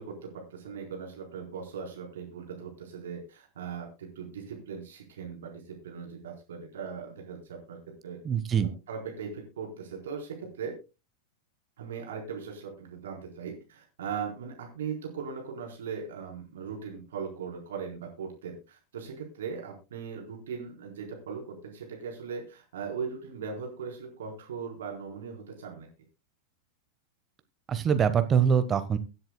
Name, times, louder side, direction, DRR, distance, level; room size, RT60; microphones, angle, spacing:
voice 1, 0.0-8.2 8.6-10.8 11.8-25.9, right 6 dB, 60° right, 1 dB, 4.2 m, -39 dB
voice 2, 8.2-8.7 27.7-29.0, right 7 dB, 25° right, 10 dB, 1.2 m, -24 dB
23.5 x 7.8 x 2.2 m, 0.28 s
figure-of-eight pair, 90°, 0 cm